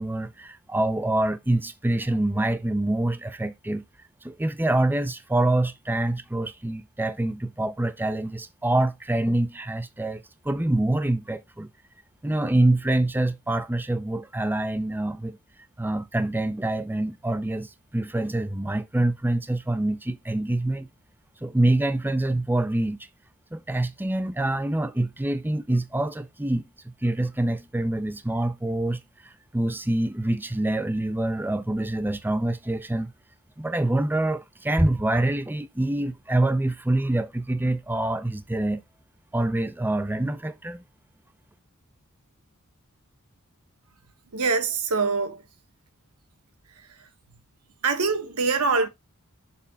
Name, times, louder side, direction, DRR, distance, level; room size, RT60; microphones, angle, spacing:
voice 1, 0.0-3.8 4.2-11.7 12.2-15.4 15.8-20.9 21.4-23.0 23.5-33.1 33.6-38.8 39.3-40.8, right 1 dB, 10° right, 0.5 m, -26 dB
voice 2, 44.3-45.4 46.8-47.1 47.8-48.9, right 4 dB, 85° right, 1.4 m, -24 dB
6.9 x 3.5 x 5.4 m
head